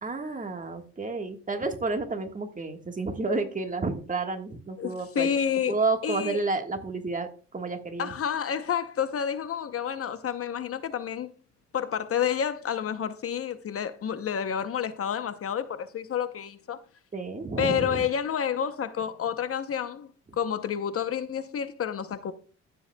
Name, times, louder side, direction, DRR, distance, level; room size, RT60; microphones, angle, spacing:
voice 1, 0.0-5.3 5.7-8.1 17.1-18.0, right 3 dB, 25° right, 1.4 m, -30 dB
voice 2, 4.8-5.8 6.0-6.4 8.0-11.3 11.7-16.8 17.6-22.3, left 8 dB, 50° left, 0.7 m, -29 dB
15.0 x 7.7 x 2.2 m
cardioid pair, 90°, 30 cm